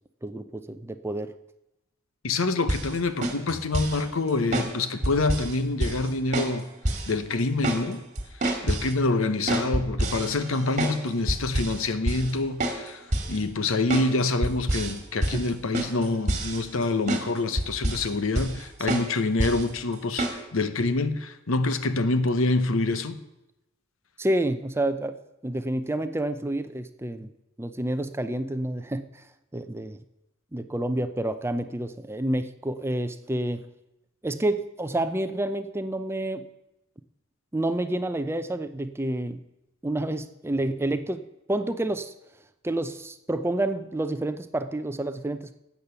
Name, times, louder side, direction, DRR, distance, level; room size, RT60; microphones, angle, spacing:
voice 1, 0.2-1.3 4.5-4.7 15.3-15.5 18.9-19.0 24.2-25.2 25.4-27.3 27.6-29.2 29.5-30.0 30.5-33.7 34.2-36.5 37.5-39.4 39.8-42.1 42.6-45.5, right 1 dB, 10° right, 0.5 m, -29 dB
voice 2, 2.2-6.7 7.1-8.0 8.6-23.2, left 3 dB, 70° left, 0.9 m, -26 dB
sound 1, 2.7-2.9 3.2-4.0 4.5-4.7 5.0-5.5 5.8-6.1 6.3-6.6 6.8-7.1 7.4-7.8 8.2-8.9 9.5-11.0 11.3-11.8 12.1-12.3 12.6-12.8 13.1-13.4 13.9-14.1 14.4-14.9 15.2-15.5 15.7-16.8 17.1-17.2 17.6-18.1 18.3-18.6 18.9-19.1 19.4-19.6 20.2-20.4, right 1 dB, 35° right, 2.0 m, -27 dB
12.5 x 8.3 x 6.9 m
head